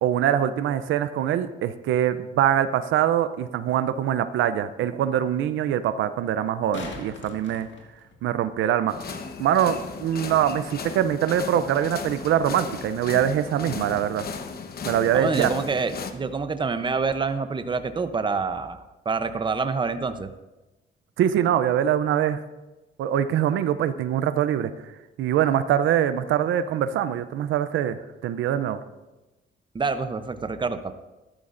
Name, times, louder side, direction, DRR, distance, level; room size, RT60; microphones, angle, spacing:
voice 1, 0.0-7.7 8.2-9.0 9.4-14.3 14.8-15.5 21.2-22.4 23.0-24.7 25.2-28.8, right 10 dB, 80° right, 12 dB, 0.5 m, -23 dB
sound 1, 3.5-3.6 6.4-8.5 11.4-11.5, left 3 dB, 70° left, 1.8 m, -40 dB
sound 2, 8.9-16.1, left 5 dB, 50° left, 1.0 m, -36 dB
voice 2, 15.1-18.8 19.0-20.3 29.7-30.9, right 4 dB, 25° right, 10 dB, 0.7 m, -27 dB
14.0 x 12.0 x 2.6 m, 1.1 s
cardioid pair, 90°, 20 cm